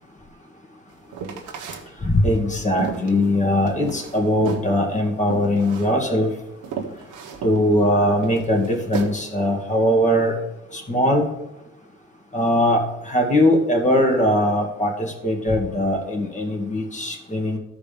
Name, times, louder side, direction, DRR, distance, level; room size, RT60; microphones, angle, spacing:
sound 1, 1.1-1.8 2.3-4.2 4.4-4.7 5.3-5.9 6.2-6.3 6.6-7.6 8.2-9.1, right 6 dB, 90° right, 1.5 m, -32 dB
voice 1, 2.0-6.3 7.4-10.4 10.7-11.3 12.3-17.6, left 1 dB, 25° left, 1 dB, 2.2 m, -20 dB
12.5 x 4.9 x 5.3 m, 0.93 s
cardioid pair, 90°, 30 cm